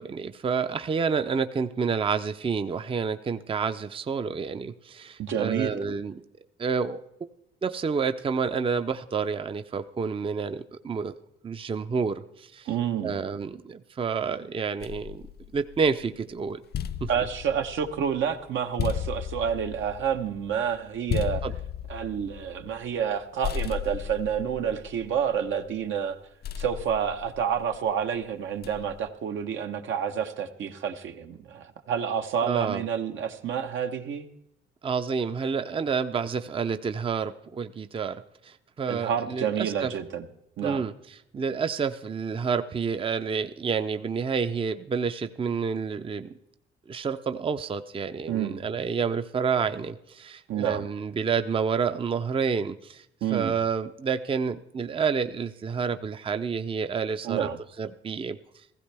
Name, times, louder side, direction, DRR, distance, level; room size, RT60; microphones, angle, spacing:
voice 1, 0.0-6.2 6.6-7.0 7.6-11.1 11.4-12.7 13.0-15.2 15.5-16.6 17.0-17.1 21.4-21.5 32.4-32.8 34.8-39.9 40.6-40.9 41.3-46.3 46.9-53.1 53.3-57.5 57.8-58.4, right 5 dB, 25° right, 10 dB, 0.5 m, -29 dB
voice 2, 5.2-5.7 12.7-13.1 17.1-21.4 21.9-26.2 26.6-34.3 38.9-40.3 40.6-40.9 48.3-48.6 50.5-50.9 53.2-53.5 57.2-57.6, right 8 dB, 75° right, 6 dB, 1.0 m, -29 dB
sound 1, 14.8-16.1 16.5-23.2 23.4-25.7 26.4-27.9 28.6-29.1, left 9 dB, 55° left, 0.5 m, -35 dB
16.0 x 15.0 x 3.4 m, 0.80 s
cardioid pair, 90°, 20 cm